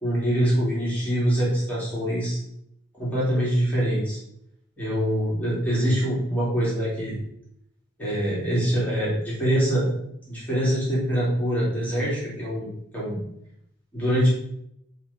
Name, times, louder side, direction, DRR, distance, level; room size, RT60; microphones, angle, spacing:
voice 1, 0.0-2.4 3.0-4.2 4.8-7.2 8.0-9.9 10.3-12.7 12.9-13.2 13.9-14.3, equal, 10° left, -8 dB, 2.5 m, -24 dB
7.0 x 4.1 x 5.0 m, 0.74 s
head